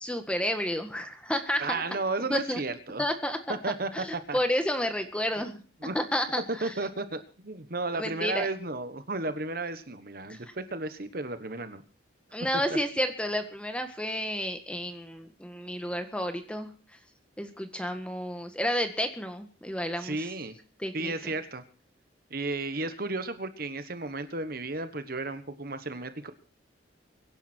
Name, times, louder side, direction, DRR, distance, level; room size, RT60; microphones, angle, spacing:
voice 1, 0.0-1.8 2.3-2.6 3.0-3.6 3.9-5.6 5.9-6.7 7.9-8.5 10.3-10.4 12.3-16.7 17.4-20.2 20.8-21.3, equal, 5° left, 7 dB, 1.7 m, -31 dB
voice 2, 1.6-3.0 3.5-4.4 5.8-6.0 6.5-11.8 12.7-12.8 20.0-20.6 20.9-21.6 22.3-26.3, right 3 dB, 50° right, 10 dB, 1.3 m, -33 dB
24.0 x 10.5 x 4.5 m, 0.36 s
head